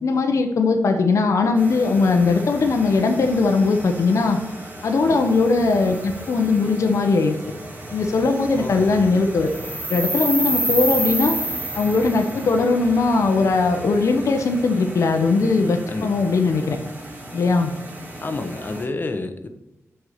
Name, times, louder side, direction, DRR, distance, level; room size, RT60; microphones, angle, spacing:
voice 1, 0.0-4.4 4.8-7.4 7.9-9.5 9.9-11.4 11.7-16.8 17.3-17.7, left 3 dB, 70° left, 4 dB, 0.9 m, -19 dB
sound 1, 1.6-18.8, right 1 dB, 35° right, 2.5 m, -32 dB
voice 2, 8.6-8.9 15.9-16.1 18.2-19.5, left 2 dB, 35° left, 7 dB, 1.0 m, -29 dB
6.4 x 4.7 x 6.8 m, 0.90 s
wide cardioid pair, 105°, 5 cm